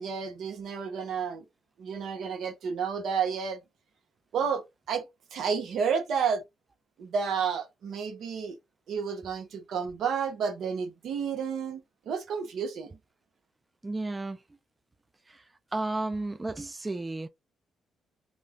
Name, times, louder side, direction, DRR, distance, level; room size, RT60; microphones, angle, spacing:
voice 1, 0.0-1.4 1.8-3.6 4.3-6.4 7.0-8.6 8.9-11.8 12.1-12.9, right 6 dB, 70° right, 0.9 m, -31 dB
voice 2, 13.8-14.4 15.7-17.3, right 2 dB, 20° right, 0.4 m, -32 dB
2.5 x 2.2 x 3.5 m
cardioid pair, 90°, 0 cm